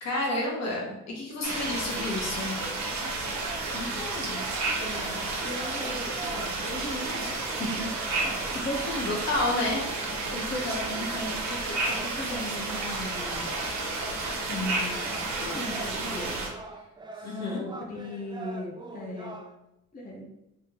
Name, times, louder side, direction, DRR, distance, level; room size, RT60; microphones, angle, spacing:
voice 1, 0.0-2.6 9.1-9.9 17.2-17.6, left 2 dB, 60° left, -1 dB, 1.2 m, -30 dB
sound 1, 1.4-16.5, right 3 dB, 65° right, 1.1 m, -31 dB
sound 2, 2.4-19.5, right 3 dB, 15° right, 0.4 m, -45 dB
voice 2, 3.7-4.5 4.8-9.2 10.3-13.5 14.5-16.9 17.1-19.4 19.9-20.3, left 1 dB, 30° left, -1 dB, 0.6 m, -37 dB
3.4 x 3.4 x 2.8 m, 0.87 s
cardioid pair, 90°, 30 cm